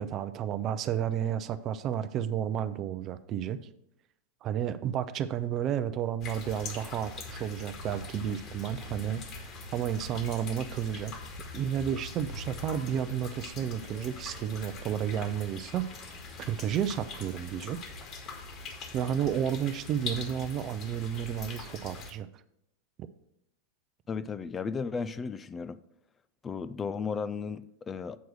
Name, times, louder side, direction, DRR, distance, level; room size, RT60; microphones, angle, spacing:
voice 1, 0.0-3.6 4.4-9.2 9.7-11.1 11.5-17.8 18.9-22.3, right 9 dB, 35° right, 0.5 m, -32 dB
sound 1, 6.2-22.1, left 3 dB, 40° left, 1.6 m, -42 dB
sound 2, 12.6-17.8, left 1 dB, 55° left, 2.3 m, -58 dB
voice 2, 24.1-25.8 26.4-28.2, left 5 dB, 20° left, 0.4 m, -34 dB
8.2 x 4.6 x 6.2 m
figure-of-eight pair, 90°, 0 cm